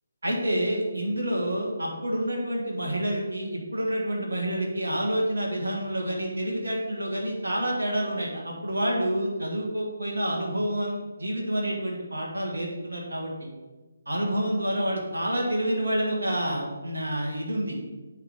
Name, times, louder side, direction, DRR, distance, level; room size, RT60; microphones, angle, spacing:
voice 1, 0.2-13.5 14.0-17.8, right 1 dB, 65° right, -1 dB, 1.6 m, -28 dB
8.5 x 3.5 x 5.1 m, 1.2 s
figure-of-eight pair, 145°, 0 cm